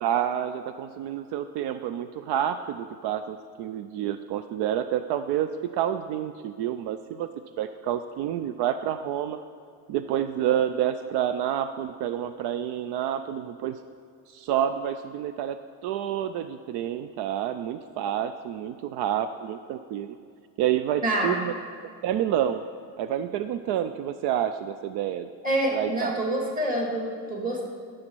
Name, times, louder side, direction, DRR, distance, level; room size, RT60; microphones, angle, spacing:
voice 1, 0.0-7.3 7.6-9.4 9.9-13.8 14.3-15.6 15.8-20.2 20.6-21.5 22.0-22.6 23.0-25.3 25.7-26.2, right 10 dB, 70° right, 10 dB, 0.5 m, -28 dB
voice 2, 21.0-21.3 25.4-27.7, right 1 dB, 20° right, -1 dB, 2.1 m, -27 dB
13.5 x 6.4 x 4.6 m, 2.3 s
cardioid pair, 135°, 41 cm